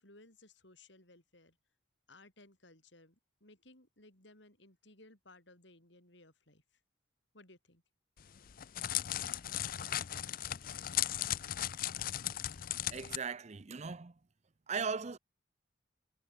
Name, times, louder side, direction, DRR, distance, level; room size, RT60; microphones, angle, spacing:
voice 1, 0.0-1.6 2.1-6.6 7.3-7.8, left 2 dB, 65° left, 6.6 m, -60 dB
Crackle, 8.2-13.2, left 12 dB, 45° left, 0.5 m, -37 dB
voice 2, 12.9-14.2 14.7-15.2, right 5 dB, 35° right, 0.6 m, -38 dB
head